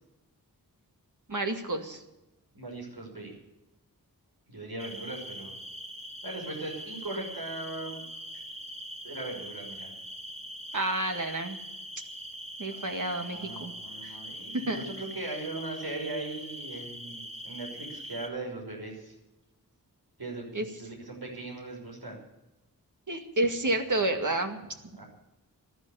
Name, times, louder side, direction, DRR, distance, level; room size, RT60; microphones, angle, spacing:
voice 1, 1.3-2.0 10.7-11.6 12.6-13.7 14.0-14.1 14.7-14.8 20.5-20.6 23.1-24.6, right 2 dB, 55° right, 5 dB, 2.1 m, -30 dB
voice 2, 2.5-3.3 4.5-5.6 6.2-8.0 9.0-9.9 12.7-19.1 20.2-22.2 25.0-25.1, right 2 dB, 75° right, 0 dB, 5.8 m, -39 dB
sound 1, 4.8-18.3, equal, 15° right, 2.4 m, -42 dB
14.5 x 11.5 x 7.0 m, 0.99 s
wide cardioid pair, 55°, 38 cm